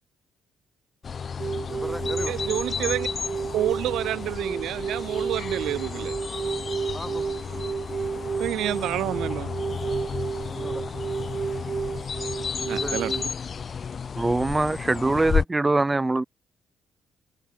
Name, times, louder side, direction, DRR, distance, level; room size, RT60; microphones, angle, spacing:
sound 1, 1.0-15.4, left 6 dB, 45° left, 0.8 m, -32 dB
sound 2, 1.4-13.3, right 5 dB, 40° right, 2.5 m, -32 dB
voice 1, 1.7-2.4 2.8-2.9 6.9-7.3 8.5-8.6 10.4-11.0 12.7-13.2, left 1 dB, 5° left, 3.4 m, -38 dB
voice 2, 2.3-3.1 3.5-6.1 8.4-9.5 12.7-13.1, right 13 dB, 85° right, 0.8 m, -28 dB
voice 3, 14.2-16.2, right 2 dB, 20° right, 1.0 m, -23 dB
cardioid pair, 90°, 0 cm